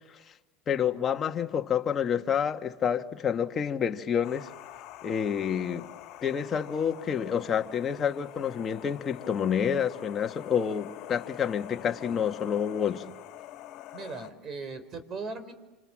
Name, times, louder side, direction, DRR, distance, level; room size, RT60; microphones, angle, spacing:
voice 1, 0.7-4.5 5.0-5.9 6.2-13.0, left 8 dB, 30° left, 1.6 m, -28 dB
sound 1, 4.2-14.3, left 13 dB, 55° left, 2.1 m, -45 dB
voice 2, 13.9-15.5, right 4 dB, 35° right, 4.3 m, -38 dB
27.5 x 26.5 x 7.6 m
supercardioid pair, 105°, 0 cm